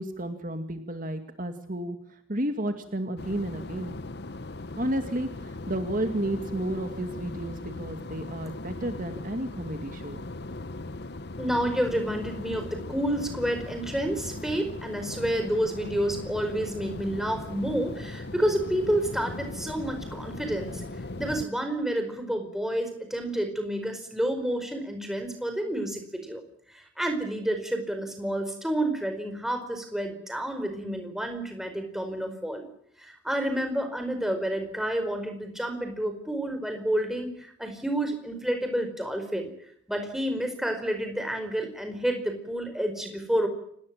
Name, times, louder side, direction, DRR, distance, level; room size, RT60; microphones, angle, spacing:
voice 1, 0.0-2.0 2.3-4.0 4.8-10.2, right 1 dB, 45° right, 7 dB, 2.3 m, -32 dB
sound 1, 3.2-21.5, left 2 dB, 55° left, 1.0 m, -39 dB
voice 2, 11.4-20.8 21.2-26.4 26.7-32.7 33.0-39.5 39.9-43.5, right 1 dB, ahead, 5 dB, 4.8 m, -29 dB
29.5 x 19.5 x 7.6 m, 0.70 s
head